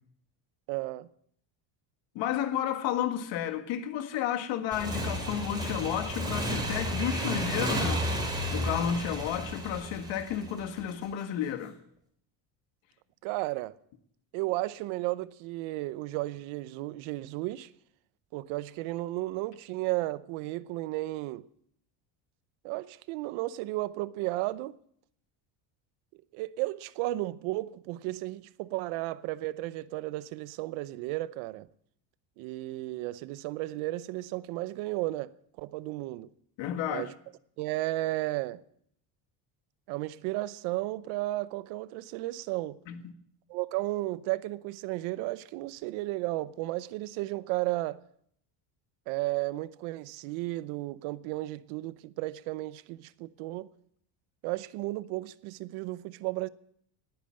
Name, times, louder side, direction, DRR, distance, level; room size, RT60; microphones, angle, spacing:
voice 1, 0.7-1.1 13.2-13.7 14.3-17.7 18.3-21.4 22.6-24.8 26.3-31.7 32.4-35.3 35.6-36.3 36.9-37.1 37.6-38.6 39.9-42.8 43.5-48.0 49.1-53.7 54.4-56.5, right 18 dB, 85° right, 0.9 m, -34 dB
voice 2, 2.2-8.0 8.5-11.8 36.6-37.1 42.9-43.1, left 9 dB, 65° left, 1.8 m, -32 dB
Motorcycle / Engine, 4.7-11.1, equal, 10° right, 4.0 m, -32 dB
19.0 x 9.3 x 7.7 m
cardioid pair, 145°, 47 cm